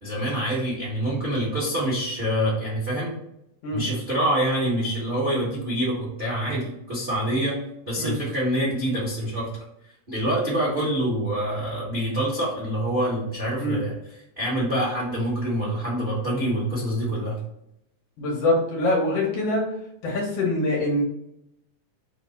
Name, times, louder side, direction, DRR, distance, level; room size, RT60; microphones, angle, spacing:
voice 1, 0.0-3.1 3.7-7.6 7.9-9.5 10.1-17.4, right 1 dB, 85° right, -5 dB, 0.5 m, -26 dB
voice 2, 18.2-19.6 20.0-21.0, left 1 dB, 65° left, -1 dB, 1.8 m, -24 dB
4.5 x 2.8 x 4.1 m, 0.80 s
omnidirectional pair, 3.4 m